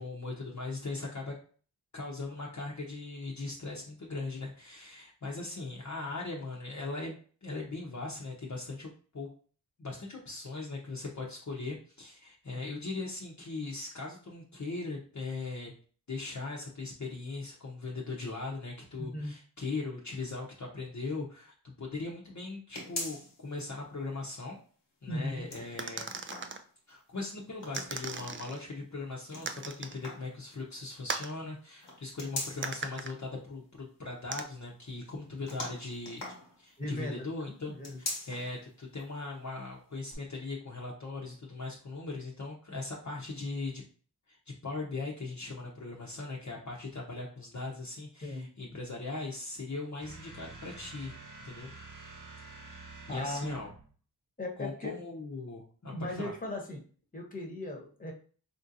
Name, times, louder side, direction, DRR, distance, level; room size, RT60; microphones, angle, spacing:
voice 1, 0.0-1.3 1.9-9.3 9.8-15.7 16.1-24.6 25.0-26.1 26.9-36.2 36.6-37.7 38.0-43.8 44.3-51.1 51.4-51.7 53.1-53.7 54.6-56.3, left 3 dB, 45° left, -3 dB, 0.8 m, -39 dB
voice 2, 19.0-19.3 25.1-25.4 36.8-37.3 37.7-38.0 48.2-48.5 53.1-53.5 54.4-55.0 55.9-56.8 57.1-58.1, left 1 dB, 20° left, 1 dB, 1.0 m, -37 dB
sound 1, 22.7-23.6 24.0-24.1 25.3-27.0 27.6-28.4 29.3-30.4 31.8-32.9 35.5-36.9 37.7-38.6 39.0-39.1 40.1-40.2, left 2 dB, 80° left, 1.2 m, -41 dB
sound 2, 25.8-26.6 27.8-28.6 29.5-30.0 31.1-31.4 32.6-33.1 34.3-34.4, right 4 dB, 30° right, 0.4 m, -38 dB
sound 3, 50.0-53.9, right 3 dB, 50° right, 0.9 m, -48 dB
3.6 x 2.5 x 2.7 m, 0.41 s
cardioid pair, 45°, 42 cm